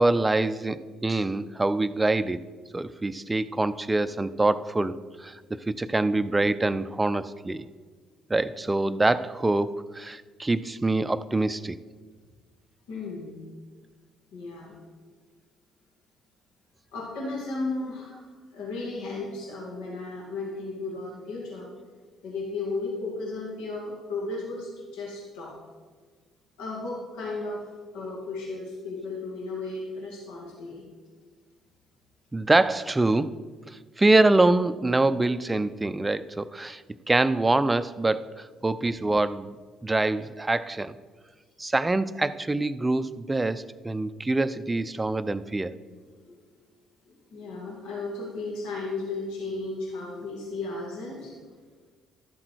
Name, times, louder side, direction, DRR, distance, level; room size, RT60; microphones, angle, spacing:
voice 1, 0.0-2.5 2.7-5.4 5.7-7.7 8.3-11.8 32.3-33.3 33.7-39.5 39.8-40.9 41.6-45.7, right 2 dB, 20° right, 14 dB, 0.5 m, -25 dB
voice 2, 12.9-13.4 14.3-14.7 16.9-18.2 18.5-21.7 22.2-25.6 26.6-30.8 45.9-46.0 46.3-46.4 47.1-51.3, left 3 dB, 75° left, -3 dB, 2.2 m, -35 dB
12.5 x 7.4 x 4.6 m, 1.5 s
hypercardioid pair, 50°, 0 cm